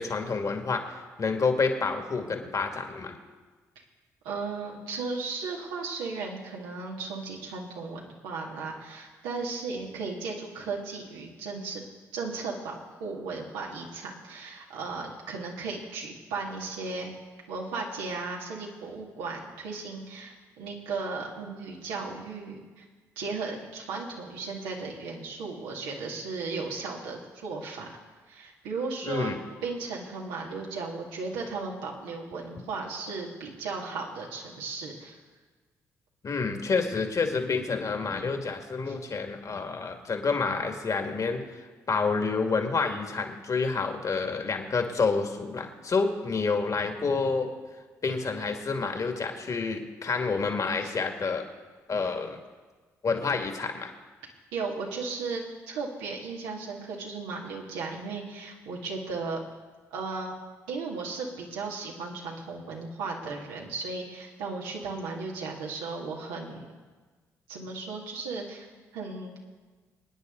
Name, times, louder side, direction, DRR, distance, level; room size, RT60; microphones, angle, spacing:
voice 1, 0.0-3.2 29.0-29.4 36.2-41.4 41.9-47.5 48.0-51.5 51.9-52.4 53.0-53.9, left 4 dB, 45° left, 4 dB, 2.2 m, -28 dB
voice 2, 4.2-11.8 12.1-17.1 17.5-22.8 23.2-27.9 28.3-29.3 29.6-35.1 38.8-39.0 50.8-50.9 54.5-59.4 59.9-60.3 60.7-66.7 67.5-69.4, right 4 dB, 80° right, -2 dB, 2.4 m, -36 dB
25.5 x 9.8 x 3.9 m, 1.4 s
hypercardioid pair, 45°, 8 cm